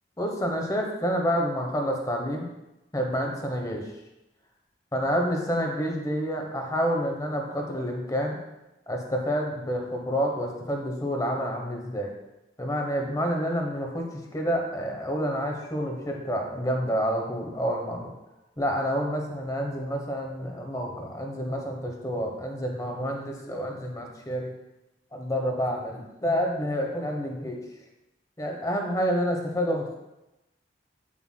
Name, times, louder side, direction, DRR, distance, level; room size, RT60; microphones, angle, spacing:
voice 1, 0.2-2.5 2.9-3.9 4.9-8.4 8.9-12.1 12.6-14.0 14.3-18.1 18.6-24.5 25.1-27.6 28.4-30.0, equal, 20° left, 1 dB, 1.0 m, -28 dB
8.0 x 7.3 x 2.2 m, 0.95 s
head